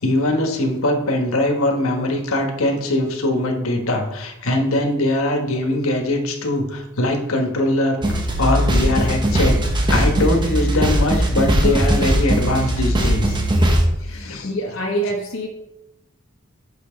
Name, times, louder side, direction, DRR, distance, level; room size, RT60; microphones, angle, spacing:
voice 1, 0.0-9.6 9.9-13.4 14.1-14.5, left 1 dB, 85° left, 3 dB, 1.2 m, -21 dB
sound 1, 8.0-13.9, equal, 20° right, 0.9 m, -19 dB
voice 2, 14.0-15.5, right 1 dB, 70° left, -1 dB, 1.0 m, -26 dB
5.8 x 5.8 x 4.4 m, 0.92 s
head